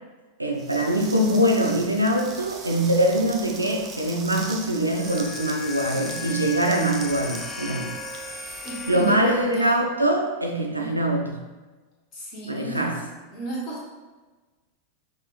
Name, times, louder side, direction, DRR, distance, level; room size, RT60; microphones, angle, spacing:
voice 1, 0.4-8.0 8.3-8.4 8.9-11.4 12.5-13.0, right 1 dB, 85° right, 1 dB, 0.4 m, -23 dB
sound 1, 0.6-9.6, right 4 dB, 25° right, 0.6 m, -41 dB
sound 2, 4.9-9.6, left 4 dB, 10° left, 0.3 m, -36 dB
voice 2, 8.6-9.8 10.8-11.0 12.1-13.0 13.3-13.9, right 2 dB, 35° left, -5 dB, 1.4 m, -34 dB
5.4 x 2.5 x 3.1 m, 1.2 s
figure-of-eight pair, 90°, 0 cm